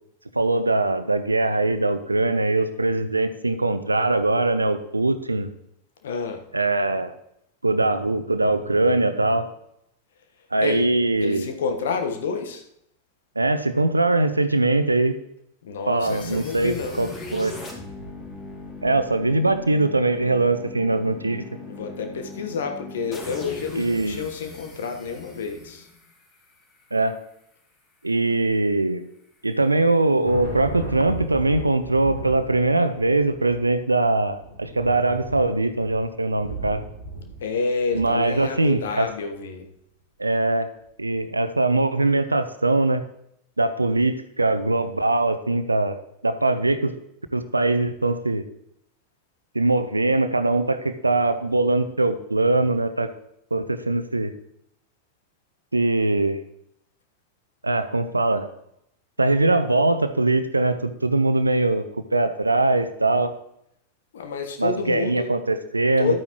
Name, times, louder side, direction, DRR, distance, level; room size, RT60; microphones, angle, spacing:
voice 1, 0.3-5.5 6.5-7.1 7.6-9.5 10.5-11.5 13.4-15.1 15.9-17.5 18.8-21.4 23.8-24.3 26.9-27.2 28.0-29.0 29.4-36.8 37.9-39.1 40.2-40.7 41.0-43.0 43.6-46.0 46.2-46.9 47.3-48.4 49.5-53.1 53.5-54.3 55.7-56.4 57.6-58.5 59.2-61.9 62.1-63.3 64.6-66.1, right 2 dB, 80° right, 11 dB, 0.7 m, -22 dB
voice 2, 6.0-6.4 10.6-10.9 11.2-12.6 15.6-17.1 21.7-25.9 37.4-39.7 64.1-65.3 66.0-66.2, left 5 dB, 60° left, 5 dB, 1.3 m, -29 dB
sound 1, 16.0-27.0, left 2 dB, 25° left, 2.7 m, -39 dB
Thunder, 29.8-39.1, right 1 dB, 80° left, 4.8 m, -37 dB
12.0 x 8.9 x 3.1 m, 0.76 s
figure-of-eight pair, 90°, 0 cm